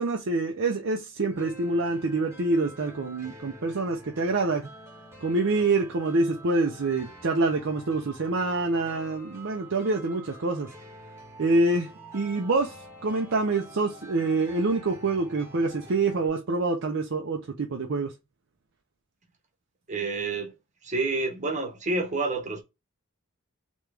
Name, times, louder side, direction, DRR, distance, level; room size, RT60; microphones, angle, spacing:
voice 1, 0.0-4.7 5.2-10.7 11.4-18.1, right 3 dB, 60° right, 0.6 m, -26 dB
sound 1, 1.3-16.3, equal, 10° right, 1.1 m, -48 dB
voice 2, 19.9-20.5 20.8-22.6, right 3 dB, 35° right, 1.0 m, -28 dB
3.4 x 3.1 x 3.3 m
head